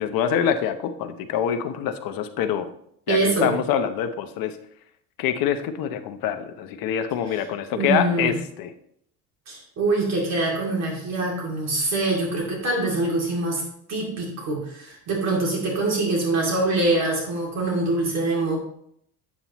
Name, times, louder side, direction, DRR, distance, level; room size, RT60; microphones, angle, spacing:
voice 1, 0.0-2.7 3.1-4.6 5.2-8.7, left 8 dB, 65° left, 9 dB, 0.8 m, -25 dB
voice 2, 3.1-3.5 7.7-8.3 9.5-13.6 13.9-18.6, right 2 dB, 45° right, -2 dB, 2.5 m, -24 dB
8.4 x 7.3 x 3.0 m, 0.70 s
cardioid pair, 155°, 36 cm